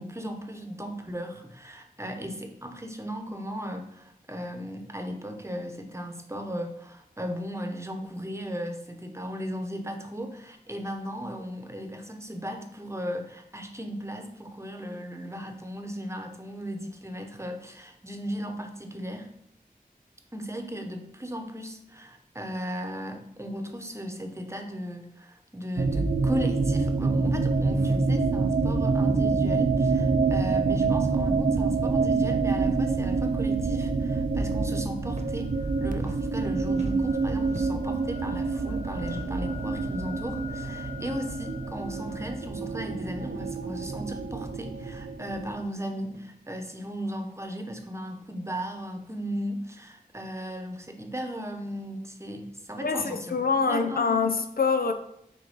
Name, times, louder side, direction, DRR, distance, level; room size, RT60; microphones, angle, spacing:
voice 1, 0.0-19.3 20.3-35.5 35.8-54.2, equal, 15° right, 1.0 m, -36 dB
sound 1, 25.8-45.6, right 4 dB, 60° right, 0.6 m, -26 dB
sound 2, 35.1-35.3 35.6-36.4 36.7-38.0 39.0-39.5 40.4-40.6 40.9-41.0 41.9-42.2 43.4-43.5 44.6-44.9 46.0-46.2, right 1 dB, 45° right, 1.0 m, -47 dB
voice 2, 52.8-54.9, left 5 dB, 70° left, 0.6 m, -25 dB
6.0 x 3.1 x 5.3 m
wide cardioid pair, 45°, 16 cm